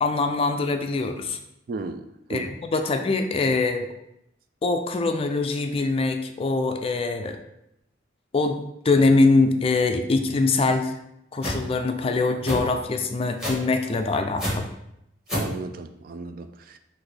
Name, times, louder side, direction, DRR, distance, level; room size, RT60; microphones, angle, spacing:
voice 1, 0.0-1.4 2.3-3.9 4.6-7.4 8.3-8.6 8.8-10.9 11.3-14.7, left 3 dB, 30° left, 6 dB, 0.4 m, -23 dB
voice 2, 1.7-2.5 15.3-16.8, right 3 dB, 50° right, 9 dB, 0.3 m, -35 dB
sound 1, 11.4-11.6 12.4-12.6 13.4-13.7 14.4-14.5 15.3-15.5, left 1 dB, 5° right, 1.5 m, -27 dB
5.9 x 2.6 x 3.3 m, 0.80 s
head